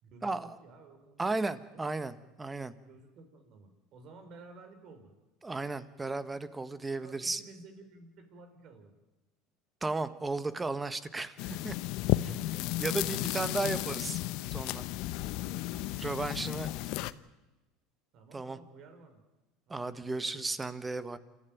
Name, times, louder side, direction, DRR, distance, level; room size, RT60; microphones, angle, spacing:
voice 1, 0.0-1.3 1.7-1.9 2.8-5.1 7.0-8.9 12.1-13.4 13.8-14.2 15.2-15.7 16.2-16.9 18.1-19.2 19.7-20.5, right 3 dB, 50° right, 7 dB, 5.3 m, -54 dB
voice 2, 1.2-2.7 5.4-7.4 9.8-11.7 12.8-14.2 14.5-14.9 16.0-16.7 18.3-18.6 19.7-21.2, right 3 dB, 15° right, 13 dB, 1.4 m, -34 dB
sound 1, 11.4-17.1, left 16 dB, 65° left, 0.9 m, -33 dB
28.0 x 14.0 x 9.3 m, 1.1 s
supercardioid pair, 110°, 0 cm